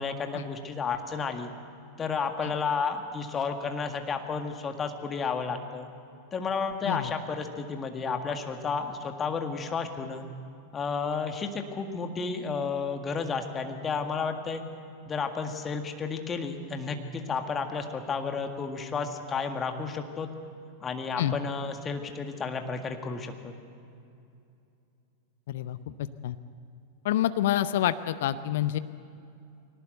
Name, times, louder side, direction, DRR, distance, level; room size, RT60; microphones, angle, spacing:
voice 1, 0.0-1.5 2.0-5.9 6.3-10.3 10.7-14.6 15.1-20.3 20.8-23.5, left 5 dB, 20° left, 5 dB, 1.9 m, -32 dB
voice 2, 25.5-25.9 26.2-26.4 27.0-28.8, left 12 dB, 55° left, 14 dB, 0.6 m, -27 dB
22.0 x 18.5 x 8.1 m, 2.6 s
figure-of-eight pair, 90°, 0 cm